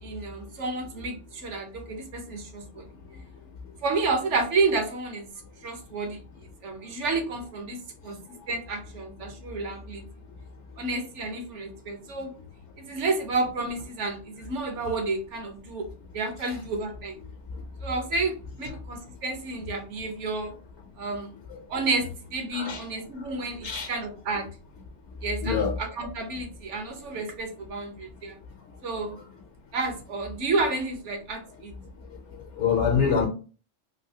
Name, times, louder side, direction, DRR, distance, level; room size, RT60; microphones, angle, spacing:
voice 1, 0.0-2.9 3.8-5.3 5.6-6.2 6.6-8.2 8.5-10.0 10.8-12.3 12.8-15.9 16.1-17.2 17.8-20.5 21.0-21.4 21.7-24.5 25.2-28.4 28.8-29.2 29.7-31.7, right 3 dB, 65° right, 1.1 m, -30 dB
voice 2, 22.5-22.8 23.6-23.9 25.4-25.7 32.1-33.3, left 6 dB, 65° left, 0.8 m, -26 dB
3.2 x 2.7 x 2.7 m
omnidirectional pair, 1.4 m